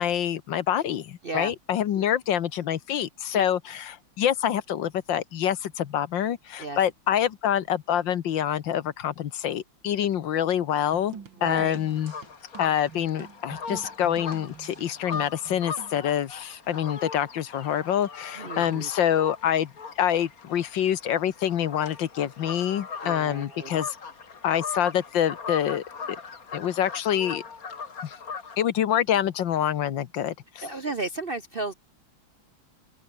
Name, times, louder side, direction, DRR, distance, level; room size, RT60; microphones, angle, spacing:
voice 1, 0.0-11.1 11.4-12.1 12.6-19.7 20.0-24.0 24.4-25.8 26.5-27.4 28.0-28.2 28.6-30.7, left 10 dB, 70° left, 1.7 m, -26 dB
sound 1, 10.9-16.0, right 6 dB, 65° right, 2.9 m, -45 dB
voice 2, 11.4-11.8 18.4-18.9 23.0-23.7 30.6-31.7, right 2 dB, 40° right, 0.8 m, -34 dB
sound 2, 11.9-28.6, left 5 dB, 45° left, 2.4 m, -39 dB
open air
omnidirectional pair, 2.2 m